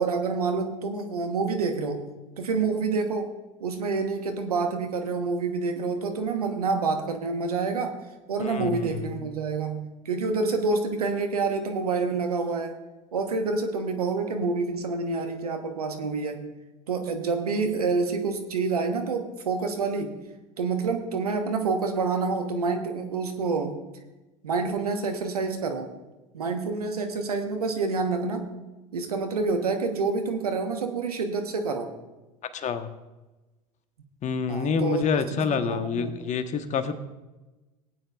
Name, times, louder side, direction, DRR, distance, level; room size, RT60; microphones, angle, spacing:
voice 1, 0.0-8.0 8.3-12.8 13.1-16.6 16.9-20.2 20.6-23.8 24.4-25.9 26.3-28.6 28.9-31.9 34.5-36.1, right 4 dB, 85° right, 6 dB, 1.2 m, -28 dB
voice 2, 8.4-9.1 32.5-32.9 34.2-36.9, left 6 dB, 40° left, 9 dB, 1.2 m, -27 dB
18.0 x 8.9 x 2.5 m, 1.1 s
hypercardioid pair, 75°, 19 cm